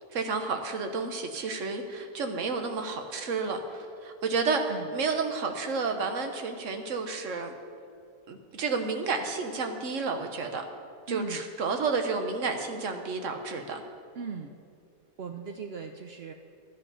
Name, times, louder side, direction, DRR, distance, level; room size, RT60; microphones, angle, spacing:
voice 1, 0.1-7.5 8.3-10.6 11.1-13.8, right 4 dB, 55° right, 5 dB, 1.3 m, -31 dB
voice 2, 11.1-11.4 14.1-14.5 15.2-16.3, right 5 dB, 85° right, 4 dB, 0.5 m, -38 dB
12.5 x 9.9 x 5.5 m, 2.4 s
omnidirectional pair, 1.7 m